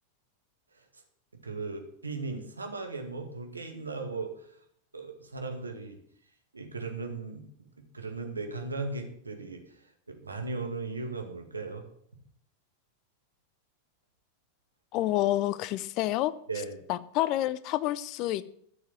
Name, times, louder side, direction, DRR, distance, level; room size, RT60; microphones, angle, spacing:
voice 1, 1.3-4.3 4.9-6.0 6.5-9.8 10.1-11.8 16.5-16.8, right 3 dB, 80° right, 4 dB, 2.2 m, -37 dB
voice 2, 14.9-16.3 16.9-18.5, left 15 dB, 40° left, 17 dB, 0.7 m, -28 dB
13.0 x 7.4 x 7.7 m, 0.67 s
figure-of-eight pair, 90°, 0 cm